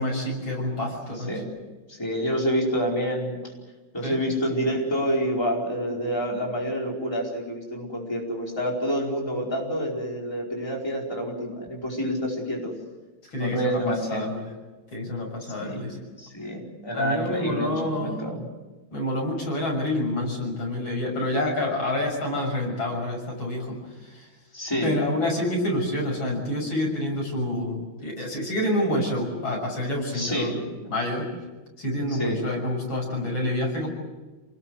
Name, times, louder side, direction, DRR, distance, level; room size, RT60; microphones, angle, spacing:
voice 1, 0.0-1.3 4.0-4.2 13.3-14.4 14.9-16.0 16.9-18.1 18.9-24.3 24.8-30.6 30.9-31.3 31.8-33.9, left 1 dB, 80° left, 0 dB, 7.4 m, -28 dB
voice 2, 1.1-1.5 1.9-3.5 3.9-12.7 13.4-14.3 15.6-15.9 16.2-18.5 24.5-25.0 30.1-30.6 32.1-32.4, equal, 10° left, -2 dB, 4.8 m, -28 dB
28.0 x 20.0 x 8.1 m, 1.2 s
omnidirectional pair, 2.1 m